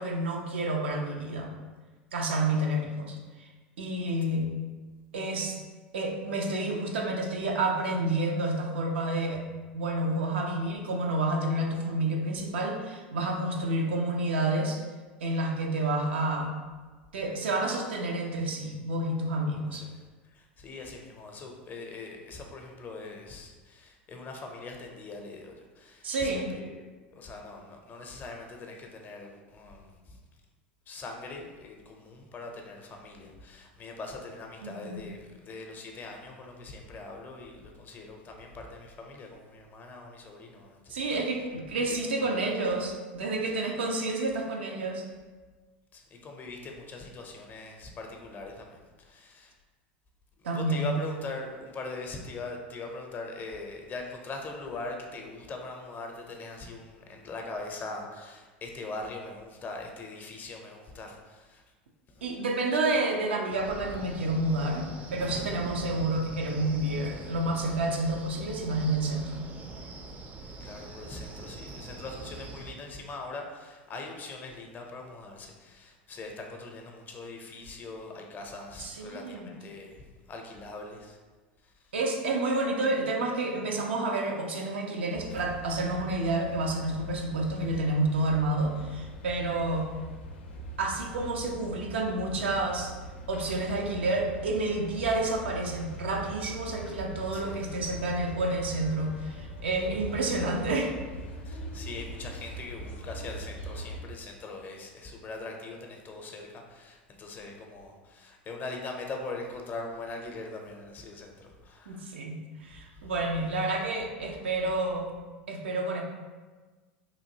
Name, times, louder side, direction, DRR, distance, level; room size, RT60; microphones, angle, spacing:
voice 1, 0.0-1.5 2.1-3.5 3.8-4.5 5.1-5.6 5.9-9.4 9.7-14.8 15.2-16.5 17.1-19.9 26.0-26.5 34.6-35.0 40.9-45.0 50.4-50.9 62.2-69.4 78.8-79.5 81.9-89.9 90.8-92.9 93.3-100.9 111.9-115.1 115.5-116.0, right 2 dB, 80° right, 1 dB, 0.5 m, -29 dB
voice 2, 19.7-26.8 27.1-30.2 30.9-41.1 41.9-42.0 42.3-42.5 43.5-43.7 45.9-49.5 50.4-61.6 62.1-62.2 70.6-81.2 81.6-81.7 97.3-97.8 101.4-112.1 112.6-113.1, left 3 dB, 30° left, 2 dB, 0.5 m, -42 dB
Wind, 63.5-72.7, right 2 dB, 25° right, 0.4 m, -43 dB
sound 1, 85.1-104.0, right 1 dB, 80° left, 0.4 m, -42 dB
3.0 x 2.5 x 2.7 m, 1.3 s
hypercardioid pair, 85°, 6 cm